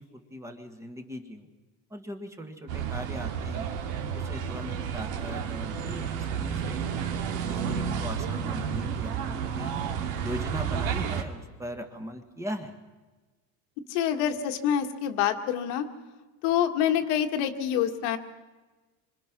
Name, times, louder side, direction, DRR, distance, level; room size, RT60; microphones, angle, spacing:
voice 1, 0.0-1.5 1.9-3.8 4.1-7.2 7.5-9.7 10.1-12.7, equal, 10° right, 5 dB, 1.6 m, -40 dB
sound 1, 2.7-11.2, right 7 dB, 85° right, 2.5 m, -31 dB
voice 2, 13.9-15.9 16.4-18.2, left 9 dB, 80° left, 6 dB, 2.0 m, -26 dB
27.0 x 25.0 x 6.1 m, 1.3 s
cardioid pair, 170°, 35 cm